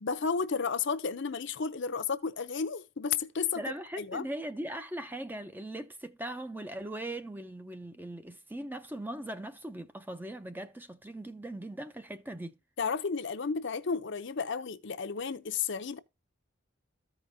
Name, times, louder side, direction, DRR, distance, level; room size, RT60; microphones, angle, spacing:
voice 1, 0.0-3.6 4.0-4.3 12.8-16.0, left 5 dB, 55° left, 0.6 m, -32 dB
voice 2, 3.5-12.6, right 1 dB, 10° right, 0.5 m, -40 dB
14.5 x 4.9 x 2.7 m
head